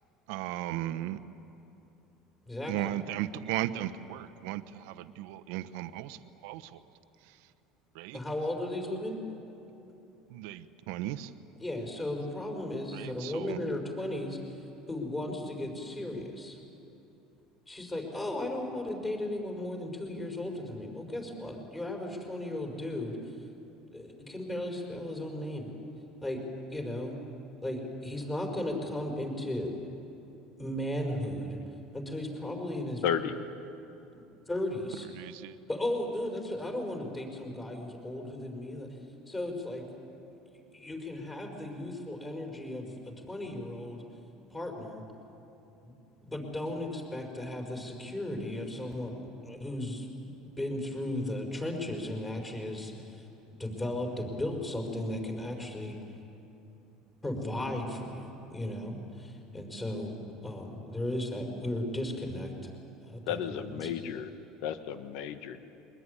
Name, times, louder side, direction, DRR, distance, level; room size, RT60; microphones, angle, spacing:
voice 1, 0.3-1.2 2.6-6.8 7.2-7.5 7.9-8.2 10.3-11.3 12.9-13.6 35.0-35.6, right 13 dB, 80° right, 12 dB, 0.9 m, -36 dB
voice 2, 2.5-3.0 8.1-9.2 11.6-14.4 14.9-16.6 17.7-23.3 23.9-25.7 26.2-27.2 27.6-29.7 30.6-31.6 31.9-33.1 34.1-35.1 35.7-38.9 39.3-39.8 40.7-44.0 44.5-45.0 45.8-45.9 46.3-49.2 49.4-53.2 53.6-56.0 57.2-60.1 60.4-62.7 63.0-63.9, left 1 dB, 15° left, 2 dB, 5.3 m, -35 dB
voice 3, 33.0-33.3 63.3-64.3 64.6-65.6, left 8 dB, 70° left, 10 dB, 1.4 m, -33 dB
23.0 x 20.5 x 9.8 m, 2.9 s
supercardioid pair, 120°, 0 cm